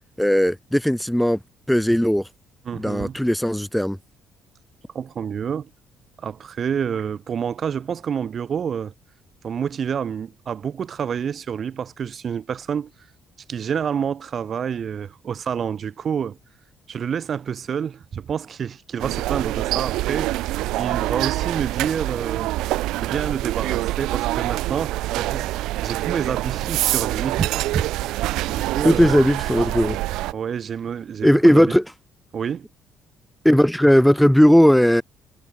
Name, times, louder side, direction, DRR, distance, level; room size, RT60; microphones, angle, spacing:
voice 1, 0.2-1.4 1.7-2.3 2.7-4.0 28.8-30.0 31.2-31.8 33.4-35.0, equal, ahead, 1.0 m, -17 dB
voice 2, 2.7-3.2 4.9-5.7 6.2-8.9 9.4-12.9 13.5-16.4 16.9-20.4 20.8-22.5 23.0-29.2 30.3-31.7 32.3-32.7, right 7 dB, 50° right, 5.5 m, -28 dB
sound 1, 19.0-30.3, right 17 dB, 85° right, 1.0 m, -25 dB
cardioid pair, 100°, 0 cm